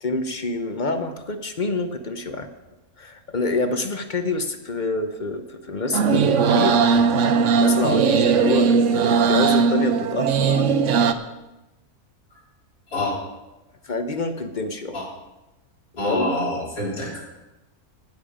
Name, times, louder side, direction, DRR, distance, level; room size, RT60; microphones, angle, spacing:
voice 1, 0.0-2.5 3.0-6.8 7.6-10.8 13.8-15.0 15.9-16.3, left 2 dB, 40° left, 8 dB, 0.7 m, -26 dB
sound 1, 5.9-11.1, right 6 dB, 60° right, 0.9 m, -19 dB
voice 2, 16.0-17.2, left 1 dB, 70° left, -6 dB, 4.6 m, -26 dB
18.5 x 7.1 x 5.0 m, 1.0 s
omnidirectional pair, 1.6 m